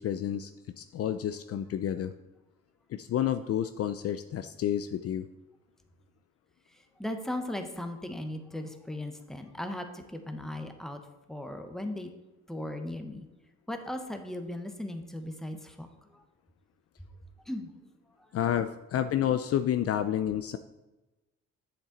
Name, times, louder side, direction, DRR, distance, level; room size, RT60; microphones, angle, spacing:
voice 1, 0.0-2.1 2.9-5.3 18.3-20.6, left 10 dB, 50° left, 10 dB, 0.4 m, -30 dB
voice 2, 7.0-11.0 11.3-12.1 12.5-13.2 13.7-15.9 16.1-16.2 17.5-17.7, left 1 dB, ahead, 6 dB, 0.9 m, -37 dB
7.5 x 7.0 x 3.9 m, 1.1 s
cardioid pair, 90°, 30 cm